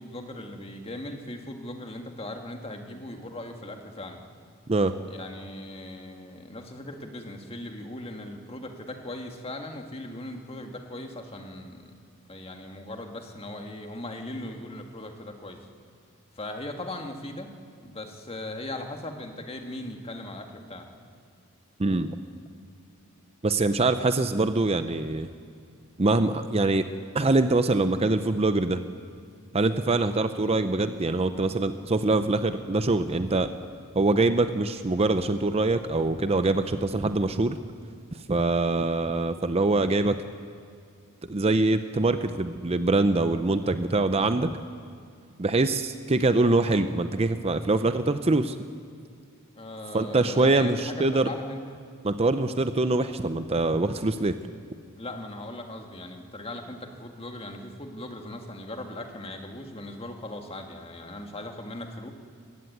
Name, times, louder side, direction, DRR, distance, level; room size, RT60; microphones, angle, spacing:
voice 1, 0.0-4.2 5.1-11.9 12.3-15.7 16.3-17.5 17.8-20.9 49.6-51.8 54.9-62.1, left 1 dB, 25° left, 4 dB, 1.9 m, -39 dB
voice 2, 21.8-22.2 23.4-25.3 26.0-26.9 27.1-28.8 29.5-33.5 34.0-37.6 38.3-40.2 41.3-44.5 45.4-48.6 49.9-51.3 52.0-54.3, right 2 dB, 25° right, 10 dB, 0.6 m, -24 dB
21.0 x 16.0 x 9.4 m, 2.3 s
head